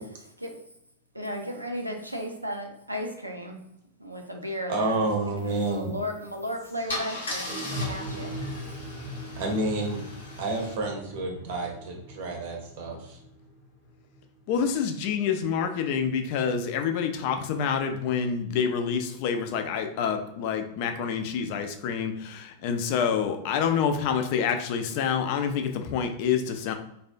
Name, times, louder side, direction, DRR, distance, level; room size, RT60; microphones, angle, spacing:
voice 1, 1.1-3.6 4.0-5.1 5.4-8.3, equal, 85° right, 2 dB, 0.4 m, -35 dB
voice 2, 4.7-5.9 9.4-10.0 10.4-13.2, right 2 dB, 50° right, 1 dB, 0.6 m, -29 dB
sound 1, 5.4-15.4, equal, 15° left, 0.8 m, -41 dB
Car / Engine starting / Idling, 6.2-6.4 6.9-10.7, left 2 dB, 70° left, 0.7 m, -38 dB
voice 3, 14.5-26.7, left 7 dB, 45° left, 6 dB, 0.3 m, -27 dB
2.4 x 2.1 x 2.5 m, 0.78 s
figure-of-eight pair, 90°, 0 cm